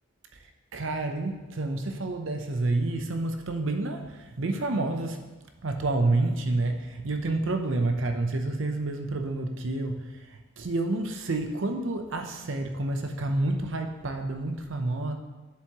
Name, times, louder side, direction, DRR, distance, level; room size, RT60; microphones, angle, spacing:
voice 1, 0.7-5.2 5.6-10.0 10.6-15.1, right 2 dB, 65° right, 5 dB, 0.7 m, -29 dB
7.6 x 7.1 x 3.0 m, 1.2 s
head